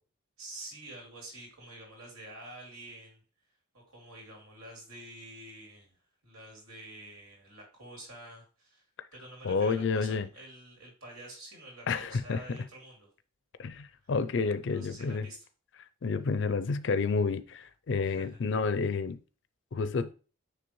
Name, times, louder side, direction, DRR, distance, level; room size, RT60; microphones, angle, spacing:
voice 1, 0.4-3.2 3.7-6.0 6.2-8.8 9.1-13.1 14.0-14.1 14.7-15.4 18.0-18.4, right 1 dB, 90° right, 2.9 m, -48 dB
voice 2, 9.4-10.3 11.9-12.6 13.6-15.3 16.0-19.2 19.7-20.1, left 4 dB, 55° left, 0.4 m, -30 dB
9.5 x 3.3 x 3.1 m
head